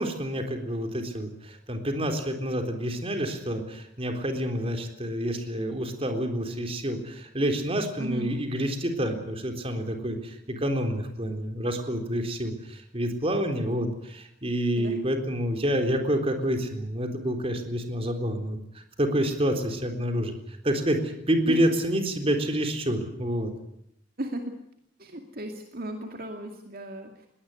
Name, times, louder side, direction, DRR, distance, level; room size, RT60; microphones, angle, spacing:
voice 1, 0.0-20.3 20.6-23.5, equal, 30° right, 5 dB, 3.8 m, -28 dB
voice 2, 8.0-8.3 14.0-14.1 14.8-15.0 21.5-21.6 24.2-24.6 25.0-27.3, right 1 dB, 50° right, 4 dB, 2.4 m, -35 dB
21.5 x 18.5 x 9.6 m, 0.77 s
head